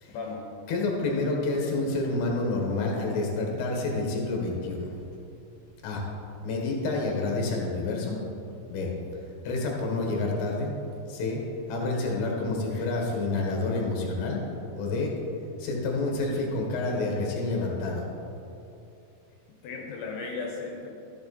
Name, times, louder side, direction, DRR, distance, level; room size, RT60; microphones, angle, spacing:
voice 1, 0.1-0.5 12.7-12.9 19.6-20.9, left 4 dB, 80° left, 0 dB, 3.3 m, -36 dB
voice 2, 0.7-4.9 5.8-6.0 6.4-8.2 8.7-8.9 9.4-10.7 11.1-11.4 11.7-14.4 14.7-15.1 15.6-18.0, left 2 dB, 65° left, 0 dB, 3.2 m, -28 dB
13.5 x 7.7 x 4.2 m, 2.8 s
omnidirectional pair, 5.3 m